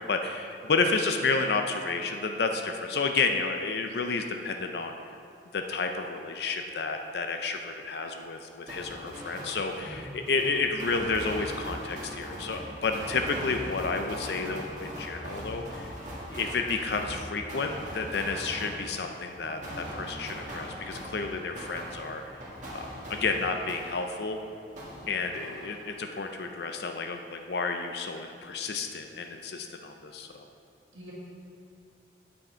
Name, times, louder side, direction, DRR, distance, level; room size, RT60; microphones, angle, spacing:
voice 1, 0.0-4.9 5.5-15.9 16.3-22.4 22.7-24.4 25.1-30.4, left 4 dB, 60° left, 5 dB, 0.5 m, -31 dB
sound 1, 8.7-24.4 24.8-26.1, equal, 40° right, 1.6 m, -41 dB
voice 2, 9.8-10.1 30.9-31.1, equal, 90° right, -7 dB, 1.8 m, -45 dB
8.6 x 6.4 x 4.4 m, 2.5 s
head